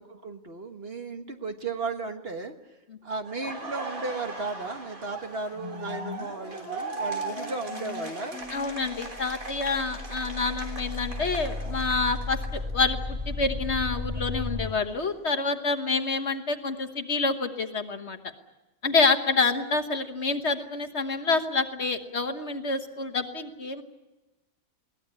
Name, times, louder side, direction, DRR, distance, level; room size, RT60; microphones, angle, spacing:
voice 1, 0.0-2.6 3.0-8.4, right 3 dB, 45° right, 6 dB, 1.6 m, -35 dB
Laughter, 3.2-13.1 13.4-15.4, right 3 dB, 70° right, 4.1 m, -39 dB
sound 1, 4.8-4.9 5.2-9.2, left 6 dB, 65° left, 1.7 m, -44 dB
voice 2, 8.5-18.2 18.8-23.8, left 4 dB, 50° left, 8 dB, 1.5 m, -27 dB
sound 2, 8.5-14.7, left 2 dB, 20° right, 3.1 m, -34 dB
22.0 x 18.0 x 9.9 m, 1.0 s
omnidirectional pair, 1.5 m